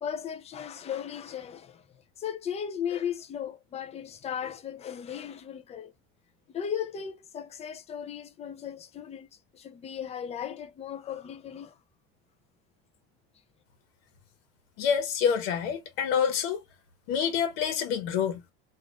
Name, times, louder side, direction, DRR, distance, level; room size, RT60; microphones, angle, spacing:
voice 1, 0.0-1.8 2.2-5.9 6.5-9.3 9.5-11.7, left 8 dB, 20° left, 0.5 m, -36 dB
voice 2, 14.8-16.6 17.1-18.4, left 7 dB, 85° left, 1.1 m, -27 dB
3.5 x 2.5 x 2.5 m
supercardioid pair, 135°, 29 cm